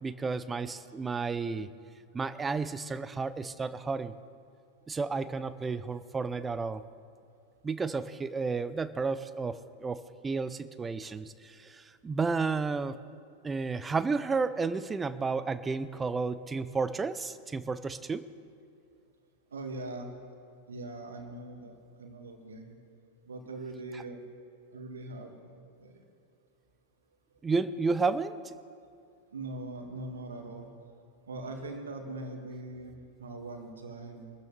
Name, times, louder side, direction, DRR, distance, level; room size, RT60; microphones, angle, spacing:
voice 1, 0.0-1.7 2.1-4.1 4.9-6.8 7.6-13.0 13.4-18.2 27.4-28.5, right 4 dB, 15° right, 14 dB, 0.6 m, -32 dB
voice 2, 19.5-20.1 20.7-22.8 23.3-24.2 24.7-26.0 29.3-30.7 31.3-34.3, right 2 dB, 70° right, 4 dB, 1.9 m, -41 dB
24.0 x 13.5 x 3.3 m, 2.3 s
figure-of-eight pair, 90°, 0 cm